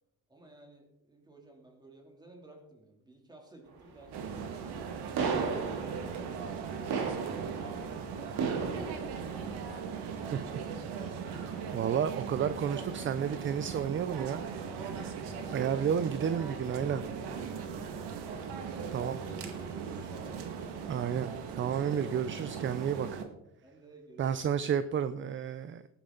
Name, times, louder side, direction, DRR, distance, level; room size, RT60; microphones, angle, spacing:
voice 1, 0.3-5.1 14.7-15.9 17.6-20.4 23.6-24.2, right 1 dB, 10° right, 1 dB, 2.9 m, -55 dB
sound 1, 3.7-21.6, right 5 dB, 70° right, 3.0 m, -41 dB
sound 2, 4.1-23.2, right 6 dB, 90° right, 2.0 m, -39 dB
voice 2, 11.7-14.4 15.5-17.0 18.9-19.2 20.8-23.2 24.2-25.8, right 8 dB, 30° right, 13 dB, 0.5 m, -31 dB
18.0 x 10.0 x 3.9 m, 0.82 s
cardioid pair, 150°, 38 cm